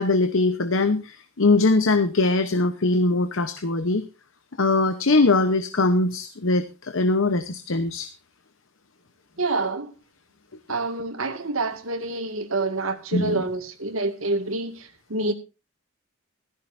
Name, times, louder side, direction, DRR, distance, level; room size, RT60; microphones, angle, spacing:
voice 1, 0.0-4.0 4.6-8.1 13.1-13.4, left 2 dB, 70° left, 1.0 m, -21 dB
voice 2, 9.4-9.9 10.7-14.8 15.1-15.3, right 2 dB, 85° right, 2.0 m, -27 dB
17.0 x 14.5 x 2.7 m
head